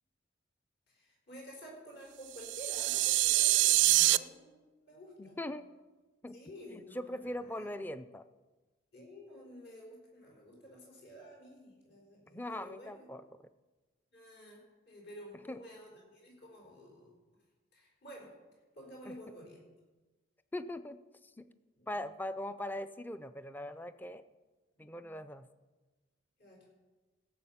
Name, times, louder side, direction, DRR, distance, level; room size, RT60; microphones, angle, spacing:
voice 1, 0.9-5.4 6.3-7.7 8.9-13.1 14.1-17.2 17.7-18.3 18.7-19.6 21.8-21.9 24.7-25.2 26.4-26.7, equal, 60° left, -1 dB, 4.6 m, -51 dB
sound 1, 2.4-4.2, right 17 dB, 70° right, 0.4 m, -26 dB
voice 2, 5.2-5.6 6.2-6.4 6.7-8.2 12.3-13.2 15.5-15.6 19.1-19.2 20.5-21.5 21.9-24.2 24.8-25.5, left 1 dB, 10° left, 12 dB, 0.4 m, -41 dB
16.5 x 7.4 x 5.6 m, 1.2 s
head